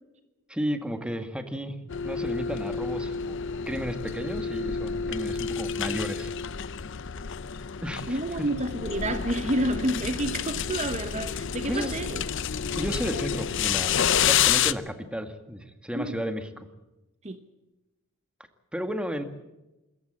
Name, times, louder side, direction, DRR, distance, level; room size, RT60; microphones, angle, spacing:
voice 1, 0.5-1.8 2.0-3.4 3.7-6.3 7.8-8.2 11.7-11.9 12.8-16.7 18.7-19.2, equal, 5° right, 1.7 m, -33 dB
sound 1, 1.9-14.7, left 8 dB, 60° left, 0.7 m, -29 dB
voice 2, 8.1-12.3 15.9-16.2 17.2-17.4, right 1 dB, 30° right, 1.0 m, -29 dB
25.5 x 14.5 x 8.7 m
head